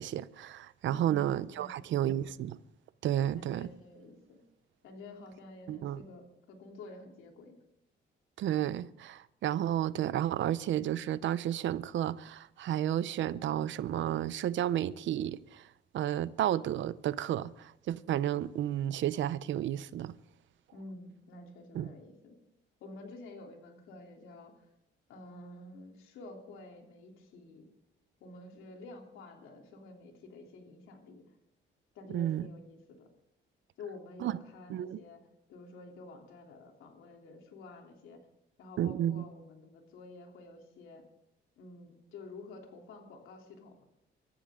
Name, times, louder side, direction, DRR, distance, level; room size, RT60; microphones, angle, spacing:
voice 1, 0.0-2.6 3.0-3.7 5.7-6.0 8.4-15.7 15.9-20.1 21.7-21.9 32.1-32.5 34.2-34.4 34.7-35.0 38.8-39.2, right 11 dB, 70° right, 0.7 m, -32 dB
voice 2, 0.9-2.2 3.4-4.4 4.8-7.6 20.7-22.4 22.8-24.6 25.1-27.7 28.2-31.2 31.9-33.1 33.8-35.2 35.5-38.2 38.6-41.0 41.6-43.8, left 2 dB, 90° left, 3.3 m, -50 dB
23.5 x 14.5 x 3.7 m
cardioid pair, 90°, 20 cm